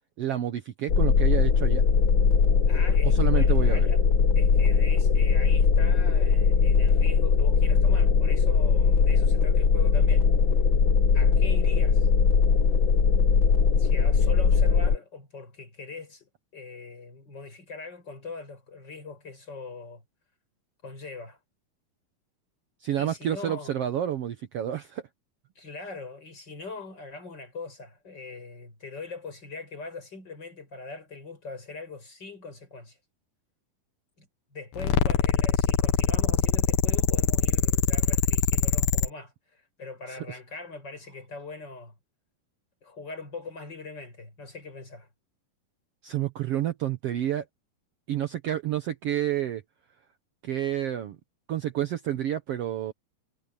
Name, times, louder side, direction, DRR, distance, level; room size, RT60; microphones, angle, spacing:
voice 1, 0.2-1.9 3.0-3.9 22.8-25.0 40.1-40.4 46.0-47.4 48.1-49.6 50.4-51.2 51.5-52.9, right 11 dB, 80° right, 1.3 m, -29 dB
sound 1, 0.9-15.0, left 5 dB, 55° left, 1.4 m, -20 dB
voice 2, 2.7-4.0 4.3-10.3 11.1-12.1 13.8-20.0 20.8-21.4 23.0-23.7 25.5-33.0 34.2-41.9 42.8-45.1, left 3 dB, 30° left, 6.5 m, -41 dB
sound 2, 34.8-39.1, left 8 dB, 85° left, 3.6 m, -23 dB
omnidirectional pair, 4.2 m